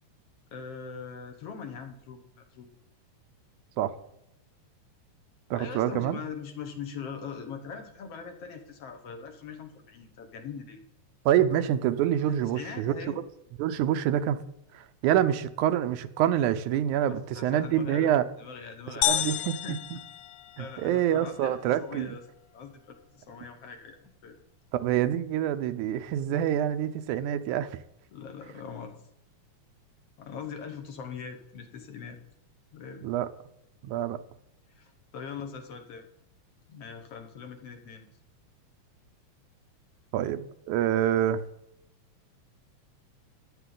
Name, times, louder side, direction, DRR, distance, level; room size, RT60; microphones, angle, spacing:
voice 1, 0.5-2.2 2.5-2.7 5.6-10.8 12.3-13.2 17.1-18.1 18.4-19.8 20.6-22.3 22.5-24.4 28.1-29.0 30.2-32.2 32.7-33.1 34.8-36.0 36.7-38.1, left 6 dB, 60° left, 5 dB, 2.0 m, -41 dB
voice 2, 5.5-6.2 11.3-12.9 13.6-14.4 14.7-18.3 19.1-19.8 20.6-22.2 24.7-27.7 33.0-33.3 33.8-34.2 40.1-41.4, right 11 dB, 85° right, 11 dB, 2.2 m, -26 dB
sound 1, 19.0-21.0, left 12 dB, 80° left, 1.6 m, -30 dB
14.0 x 10.5 x 3.9 m, 0.84 s
omnidirectional pair, 3.4 m